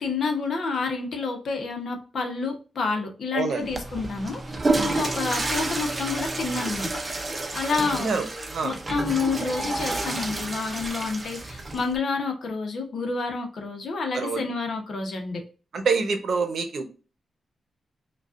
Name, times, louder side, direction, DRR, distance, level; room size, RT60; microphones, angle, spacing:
voice 1, 0.0-6.9 7.5-8.1 8.6-15.4, left 4 dB, 60° left, 4 dB, 0.9 m, -29 dB
Water / Toilet flush, 3.6-12.0, right 2 dB, 25° right, 0.6 m, -29 dB
voice 2, 15.7-16.9, right 4 dB, 65° right, 6 dB, 0.8 m, -26 dB
5.1 x 2.4 x 2.4 m, 0.34 s
wide cardioid pair, 140°, 0 cm